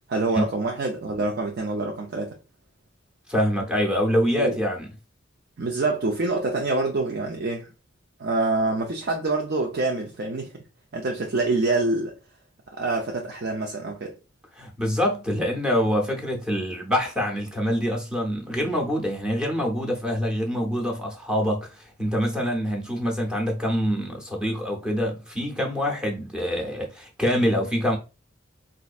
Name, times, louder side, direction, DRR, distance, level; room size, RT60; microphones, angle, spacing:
voice 1, 0.1-2.3 4.4-4.6 5.6-7.7 8.2-10.5 10.9-12.1 12.7-14.1, right 2 dB, 55° right, 0.5 m, -26 dB
voice 2, 3.3-4.9 14.6-28.0, equal, 5° right, 0.7 m, -25 dB
4.1 x 2.6 x 2.4 m
head